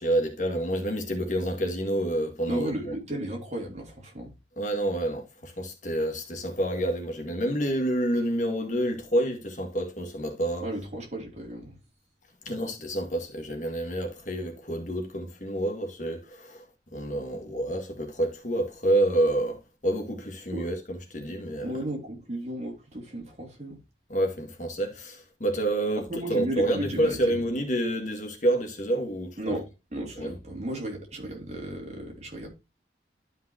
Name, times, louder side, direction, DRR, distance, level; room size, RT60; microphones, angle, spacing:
voice 1, 0.0-2.7 4.6-10.7 12.5-16.6 16.9-21.7 24.1-26.0 26.3-29.4 30.2-30.3, right 1 dB, 45° left, 1.9 m, -28 dB
voice 2, 2.5-4.3 10.6-11.7 20.5-20.7 21.6-23.8 26.1-27.4 29.4-32.5, right 1 dB, 35° right, 3.0 m, -34 dB
12.5 x 5.5 x 2.8 m
head